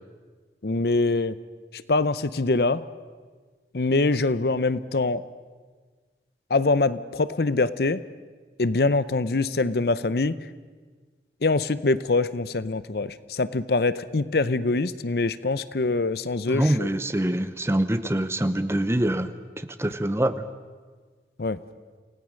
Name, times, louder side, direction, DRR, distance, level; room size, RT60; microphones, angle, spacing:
voice 1, 0.6-1.4 1.9-2.8 3.7-5.2 6.5-8.0 8.6-10.4 11.4-16.9 21.4-21.6, left 3 dB, 60° left, 15 dB, 0.7 m, -24 dB
voice 2, 16.5-20.5, right 1 dB, 15° right, 11 dB, 0.8 m, -25 dB
28.5 x 17.5 x 6.4 m, 1.5 s
head